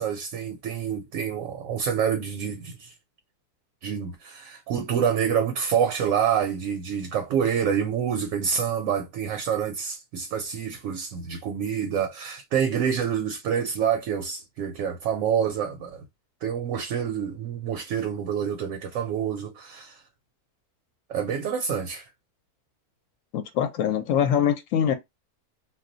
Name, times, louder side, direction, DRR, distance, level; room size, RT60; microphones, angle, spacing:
voice 1, 0.0-2.9 3.8-16.0 16.4-20.0 21.1-22.1, right 8 dB, 70° right, 0.9 m, -27 dB
voice 2, 23.3-24.9, left 9 dB, 70° left, 0.9 m, -23 dB
2.3 x 2.2 x 3.7 m
omnidirectional pair, 1.6 m